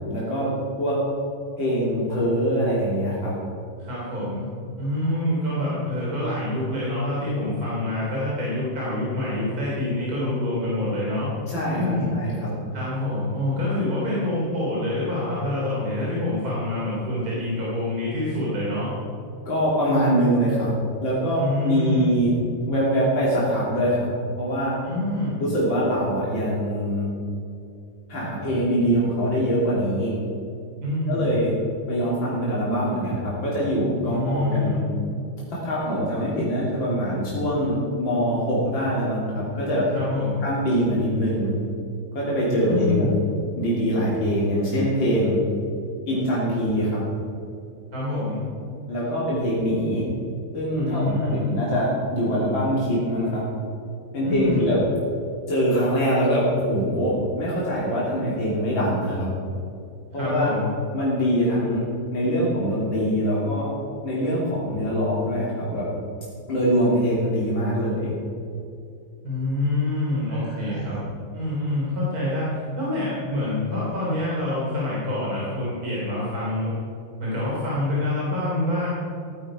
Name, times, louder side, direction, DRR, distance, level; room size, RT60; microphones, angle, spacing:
voice 1, 0.1-0.5 0.8-1.0 1.6-3.4 11.5-12.5 19.5-20.7 21.0-22.3 22.7-24.8 25.4-27.1 28.1-30.1 31.1-31.5 31.9-34.8 35.5-39.9 40.4-41.5 42.1-43.1 43.6-45.4 46.1-47.0 48.9-50.0 50.5-53.5 54.1-54.8 55.5-59.3 60.1-60.5 60.9-63.7 64.0-65.9 66.5-68.1 70.5-71.0, equal, 75° left, -7 dB, 3.8 m, -23 dB
voice 2, 3.8-4.5 4.8-11.3 11.7-12.1 12.7-18.9 21.4-22.1 24.8-25.4 30.8-31.2 34.1-34.8 39.9-40.4 42.6-43.2 47.9-48.4 50.7-51.4 54.2-54.7 60.1-60.7 69.2-71.0 71.3-76.7 77.2-78.9, left 2 dB, 50° right, -7 dB, 3.7 m, -26 dB
16.5 x 10.5 x 5.0 m, 2.6 s
omnidirectional pair, 2.1 m